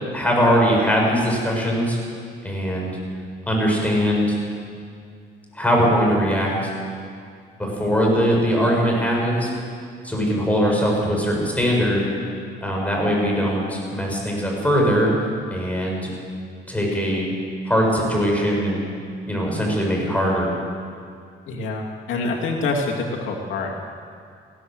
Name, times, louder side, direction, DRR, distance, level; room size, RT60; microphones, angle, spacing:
voice 1, 0.1-2.0 2.4-2.9 3.5-4.4 5.5-6.7 7.6-9.5 10.0-12.1 12.6-15.1 15.5-16.1 16.7-17.3 17.6-18.8 19.3-20.5, equal, 5° left, -2 dB, 7.1 m, -21 dB
voice 2, 21.5-23.7, left 3 dB, 80° left, -1 dB, 2.5 m, -26 dB
20.0 x 16.0 x 8.0 m, 2.2 s
cardioid pair, 90°, 20 cm